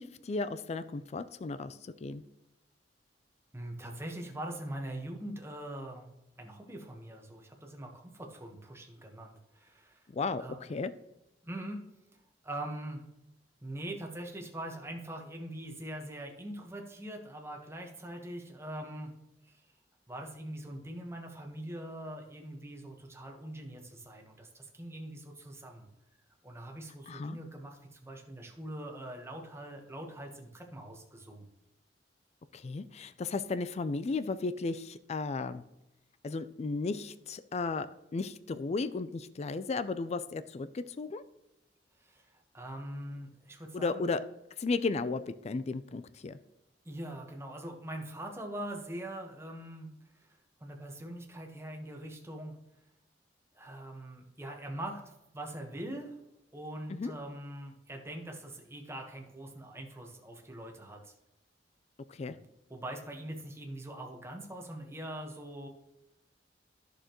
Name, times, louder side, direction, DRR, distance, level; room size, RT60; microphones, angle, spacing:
voice 1, 0.0-2.2 10.1-10.9 27.1-27.4 32.5-35.6 36.2-37.9 38.1-41.2 43.7-44.2 44.6-46.4 56.9-57.1 62.1-62.4, left 3 dB, 35° left, 13 dB, 0.4 m, -34 dB
voice 2, 3.5-6.1 6.4-10.0 10.4-10.6 11.4-11.8 12.4-13.0 13.6-19.1 19.4-19.6 20.1-25.9 26.4-31.4 42.0-44.1 46.8-50.3 50.6-52.6 53.5-55.0 55.3-56.2 56.5-61.1 62.3-62.4 62.7-65.7, right 1 dB, 15° right, 2 dB, 1.3 m, -42 dB
11.0 x 6.7 x 3.0 m, 0.91 s
head